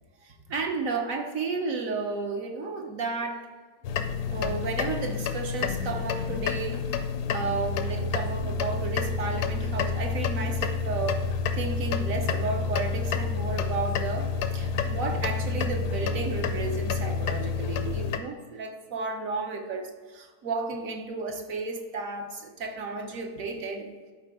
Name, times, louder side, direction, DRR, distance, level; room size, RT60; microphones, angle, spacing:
voice 1, 0.2-3.5 4.3-6.9 7.3-11.3 11.6-23.9, right 3 dB, 60° right, 4 dB, 1.2 m, -33 dB
sound 1, 3.8-18.2, left 5 dB, 75° left, 1.1 m, -29 dB
11.5 x 4.4 x 3.6 m, 1.5 s
omnidirectional pair, 1.8 m